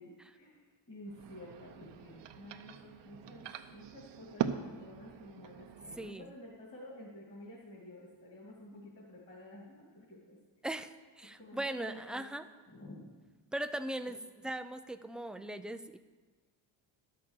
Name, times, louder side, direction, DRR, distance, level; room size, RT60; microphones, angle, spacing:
voice 1, 0.0-10.4 11.4-12.4 12.7-13.1, left 1 dB, 25° left, -5 dB, 2.5 m, -51 dB
sound 1, 1.1-6.1, right 9 dB, 60° right, 0.8 m, -42 dB
voice 2, 6.0-6.3 10.6-10.9 11.2-12.4 13.5-14.2 14.4-16.0, right 1 dB, ahead, 10 dB, 0.3 m, -39 dB
10.5 x 6.6 x 7.3 m, 1.4 s
cardioid pair, 90°, 48 cm